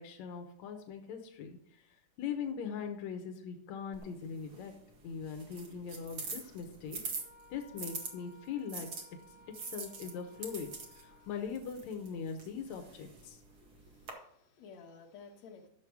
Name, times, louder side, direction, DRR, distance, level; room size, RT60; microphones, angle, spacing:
voice 1, 0.0-1.8 2.2-4.7 5.0-7.0 7.5-8.9 9.6-10.7 11.0-13.4, left 6 dB, 80° left, 3 dB, 1.6 m, -41 dB
sound 1, 3.9-8.1 8.7-14.1, right 4 dB, 50° right, 1.6 m, -45 dB
Wind instrument woodwind instrument, 7.2-11.5, left 2 dB, 70° right, 6.3 m, -59 dB
voice 2, 13.5-15.7, left 5 dB, 55° left, -1 dB, 2.2 m, -54 dB
12.5 x 7.1 x 4.7 m, 0.72 s
omnidirectional pair, 4.9 m